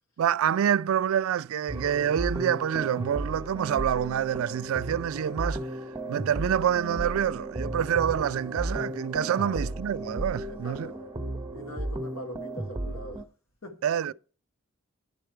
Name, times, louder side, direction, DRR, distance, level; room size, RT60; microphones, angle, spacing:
voice 1, 0.2-5.6 6.1-10.9 13.8-14.1, right 9 dB, 80° right, 0.3 m, -27 dB
sound 1, 1.7-13.2, right 1 dB, 20° right, 0.6 m, -35 dB
voice 2, 9.3-9.7 10.5-11.3 11.5-13.3 13.6-13.8, equal, 75° left, 1.3 m, -42 dB
10.0 x 5.0 x 4.4 m
head